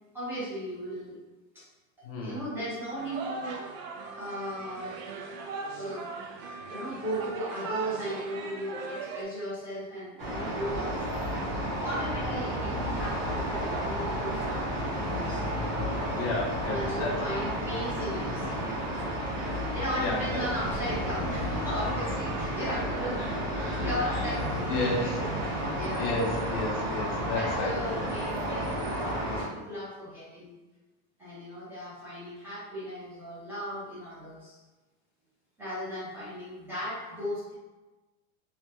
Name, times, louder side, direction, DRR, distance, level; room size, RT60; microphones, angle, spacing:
voice 1, 0.1-1.2 1.5-1.6 2.2-3.6 4.1-5.1 5.7-6.1 6.4-11.3 11.8-15.5 16.7-18.8 19.7-23.2 23.8-24.5 24.8-25.3 25.7-26.2 27.3-30.5 31.2-34.6 35.6-37.5, equal, 5° right, -11 dB, 0.5 m, -36 dB
voice 2, 2.0-2.4 16.2-17.2 20.0-20.2 23.1-23.3 23.5-23.8 24.7-25.1 26.0-27.8, left 3 dB, 45° left, -2 dB, 0.5 m, -32 dB
sound 1, 3.0-9.2, right 4 dB, 75° right, 0.6 m, -38 dB
sound 2, 10.2-29.5, equal, 30° right, 1.0 m, -31 dB
3.3 x 2.2 x 2.8 m, 1.2 s
supercardioid pair, 170°, 40 cm